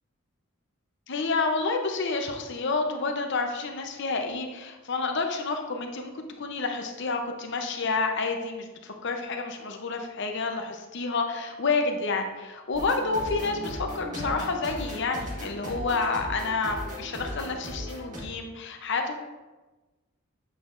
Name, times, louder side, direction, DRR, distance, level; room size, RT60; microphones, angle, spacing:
voice 1, 1.1-19.1, left 4 dB, 55° left, 4 dB, 0.7 m, -29 dB
sound 1, 12.7-18.2, equal, 35° right, 1.5 m, -37 dB
7.8 x 5.1 x 2.5 m, 1.2 s
head